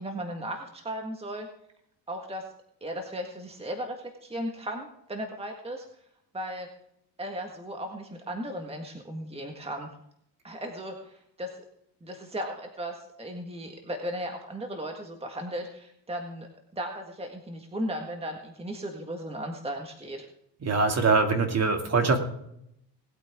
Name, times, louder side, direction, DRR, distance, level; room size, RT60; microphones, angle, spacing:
voice 1, 0.0-1.5 2.1-2.5 2.8-5.9 6.3-6.7 7.2-9.9 10.4-11.5 12.0-16.5 16.7-20.3, equal, 15° right, 3 dB, 1.7 m, -36 dB
voice 2, 20.6-22.2, right 4 dB, 35° right, 4 dB, 2.6 m, -23 dB
19.5 x 8.8 x 3.7 m, 0.74 s
cardioid pair, 105°, 43 cm